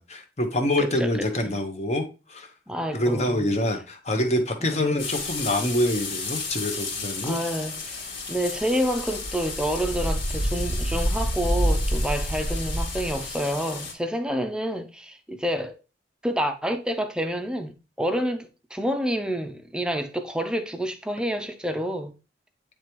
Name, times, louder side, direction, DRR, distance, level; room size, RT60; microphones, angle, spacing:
voice 1, 0.0-2.5 2.9-7.4, left 1 dB, 35° left, 0.9 m, -26 dB
voice 2, 2.7-3.5 4.6-5.0 7.2-15.8 16.2-22.1, equal, 5° right, 0.5 m, -28 dB
sound 1, 5.0-13.9, left 1 dB, 80° left, 2.4 m, -29 dB
9.2 x 3.4 x 3.0 m
head